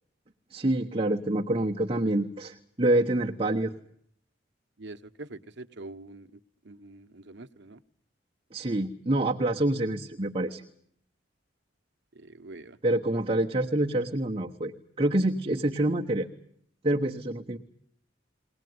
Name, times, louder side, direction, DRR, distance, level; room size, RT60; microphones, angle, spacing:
voice 1, 0.5-3.7 8.5-10.6 12.8-14.7 15.0-16.3 16.8-17.6, right 1 dB, 30° right, 0 dB, 1.2 m, -26 dB
voice 2, 4.8-6.3 6.6-7.8 12.1-12.8, right 2 dB, 65° right, 9 dB, 1.1 m, -44 dB
22.0 x 19.0 x 9.5 m, 0.66 s
head